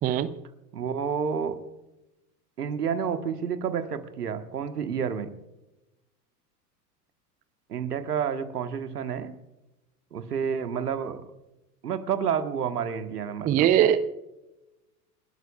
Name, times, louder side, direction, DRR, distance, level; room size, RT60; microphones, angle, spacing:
voice 1, 0.0-0.3 13.4-14.2, right 10 dB, 20° right, 15 dB, 0.5 m, -21 dB
voice 2, 0.7-1.6 2.6-5.3 7.7-9.3 10.1-11.2 11.8-13.7, right 7 dB, 70° right, 9 dB, 1.4 m, -29 dB
28.5 x 12.5 x 2.4 m, 0.96 s
figure-of-eight pair, 85°, 48 cm